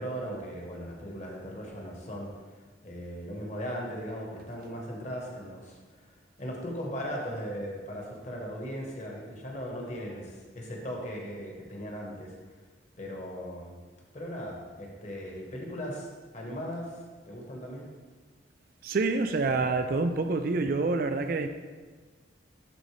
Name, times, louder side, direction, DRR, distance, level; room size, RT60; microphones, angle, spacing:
voice 1, 0.0-6.1 6.4-12.6 13.0-13.7 14.1-16.1 16.3-17.0 17.3-17.9, equal, 40° left, 1.2 m, -38 dB
voice 2, 18.8-21.5, right 3 dB, 50° right, 0.4 m, -27 dB
11.5 x 3.9 x 3.2 m
head